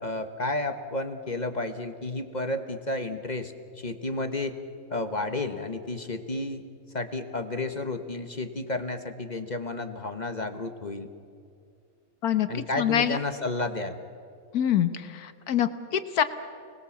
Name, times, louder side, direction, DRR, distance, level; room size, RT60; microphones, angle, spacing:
voice 1, 0.0-4.6 4.9-6.6 6.9-11.1 12.5-14.0, left 2 dB, 30° left, 8 dB, 1.1 m, -32 dB
voice 2, 12.2-13.2 14.5-16.2, left 10 dB, 75° left, 11 dB, 1.5 m, -25 dB
29.5 x 20.0 x 7.2 m, 2.4 s
omnidirectional pair, 1.6 m